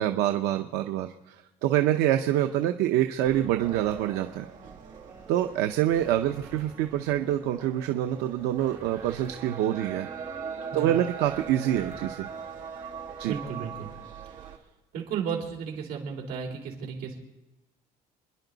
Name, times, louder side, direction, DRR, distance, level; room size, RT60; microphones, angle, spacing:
voice 1, 0.0-1.4 1.6-4.5 5.3-10.1 10.7-12.3 13.2-13.3, right 12 dB, 85° right, 6 dB, 0.8 m, -26 dB
sound 1, 3.3-13.9, right 3 dB, 15° right, 4.6 m, -49 dB
sound 2, 3.6-14.6, right 6 dB, 50° right, 2.0 m, -42 dB
voice 2, 13.2-13.9 14.2-14.5 14.9-17.2, right 7 dB, 65° right, 0 dB, 3.7 m, -34 dB
29.0 x 11.0 x 4.0 m, 1.0 s
cardioid pair, 170°, 17 cm